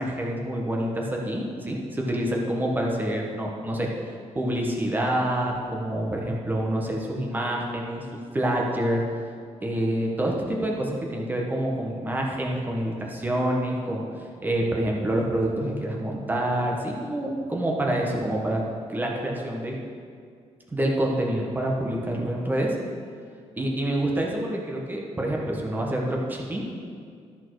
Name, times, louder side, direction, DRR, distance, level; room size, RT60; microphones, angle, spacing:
voice 1, 0.0-3.9 4.3-8.0 8.3-9.0 9.6-14.1 14.4-18.6 18.9-19.8 20.7-22.7 23.5-26.7, right 1 dB, 15° right, -1 dB, 1.3 m, -27 dB
13.5 x 6.5 x 4.7 m, 2.2 s
wide cardioid pair, 180°, 12 cm